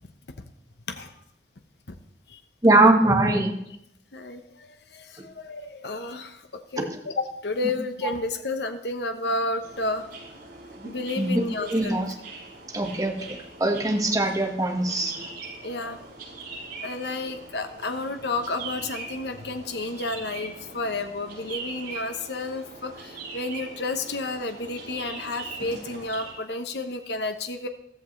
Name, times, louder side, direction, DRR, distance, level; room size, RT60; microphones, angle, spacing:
voice 1, 2.6-3.5 6.9-7.0 11.2-12.1 12.7-13.1 13.6-15.3, right 2 dB, 20° right, 2 dB, 1.6 m, -21 dB
voice 2, 4.1-6.4 6.7-10.0 10.8-12.0 13.0-13.1 15.6-16.1 16.8-27.7, left 2 dB, 70° left, 7 dB, 1.0 m, -31 dB
sound 1, 9.6-26.3, right 3 dB, 60° right, 5.4 m, -41 dB
15.0 x 13.5 x 3.3 m, 0.76 s
head